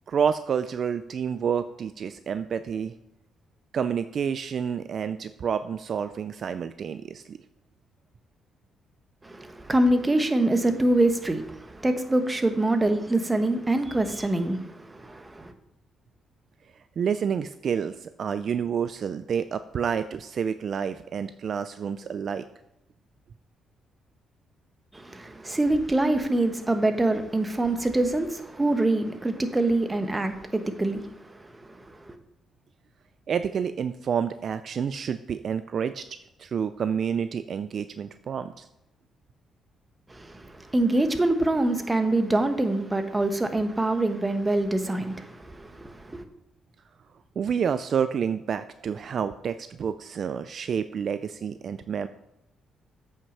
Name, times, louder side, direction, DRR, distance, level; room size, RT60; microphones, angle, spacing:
voice 1, 0.1-2.9 3.7-7.4 17.0-22.5 33.3-36.0 36.4-38.7 47.4-52.1, right 7 dB, 55° right, 0.4 m, -29 dB
voice 2, 9.2-15.5 24.9-32.1 40.1-46.2, right 2 dB, 15° right, 1.1 m, -25 dB
8.3 x 5.8 x 5.5 m
cardioid pair, 90°, 0 cm